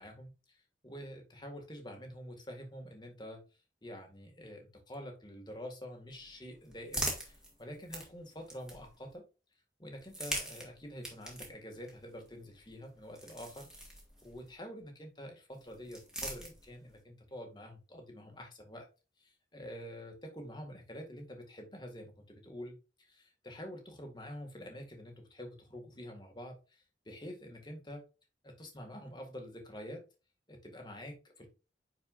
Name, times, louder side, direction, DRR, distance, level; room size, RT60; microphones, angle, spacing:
voice 1, 0.0-3.4 3.8-9.2 9.8-13.7 14.2-18.9 19.2-28.0 28.4-30.0 30.5-31.5, equal, 25° left, 3 dB, 1.9 m, -47 dB
sound 1, 6.1-9.1 9.9-14.5 15.5-17.0, right 1 dB, 5° right, 2.1 m, -43 dB
10.0 x 4.7 x 2.5 m, 0.31 s
head